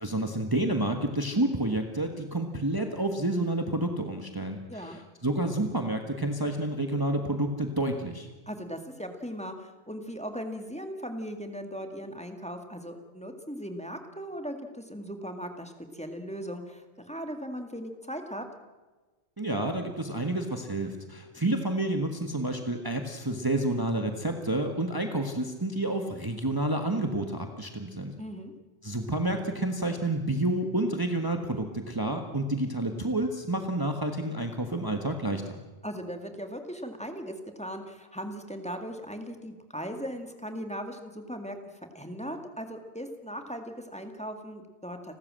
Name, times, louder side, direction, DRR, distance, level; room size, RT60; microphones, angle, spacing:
voice 1, 0.0-8.3 19.4-28.1 28.8-35.6, right 1 dB, 20° right, 4 dB, 1.5 m, -29 dB
voice 2, 4.7-5.0 8.5-18.4 28.2-28.5 35.8-41.6 41.9-45.2, equal, 5° left, 5 dB, 2.1 m, -38 dB
30.0 x 13.5 x 7.6 m, 1.3 s
omnidirectional pair, 1.2 m